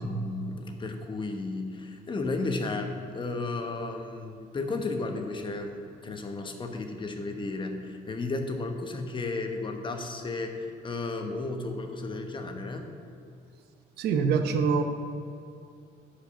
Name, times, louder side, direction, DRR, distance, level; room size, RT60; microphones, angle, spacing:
voice 1, 0.0-12.9, left 3 dB, 30° left, 5 dB, 1.1 m, -33 dB
voice 2, 14.0-14.8, right 5 dB, 75° right, 7 dB, 0.9 m, -25 dB
10.5 x 5.2 x 7.0 m, 2.6 s
cardioid pair, 110°, 17 cm